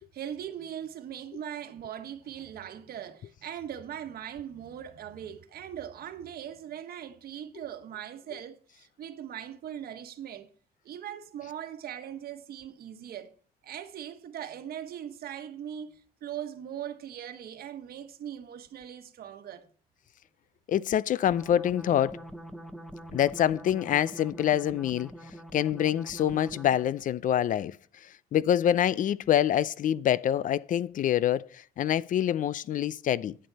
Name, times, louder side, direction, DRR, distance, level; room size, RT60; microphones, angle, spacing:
voice 1, 0.0-10.5 10.8-13.3 13.6-19.7, right 9 dB, 70° right, 1.4 m, -40 dB
voice 2, 20.7-22.2 23.1-25.1 25.5-27.8 28.3-33.4, left 10 dB, 55° left, 0.5 m, -26 dB
sound 1, 21.3-27.0, right 1 dB, ahead, 0.8 m, -44 dB
11.0 x 8.7 x 4.1 m
cardioid pair, 125°, 16 cm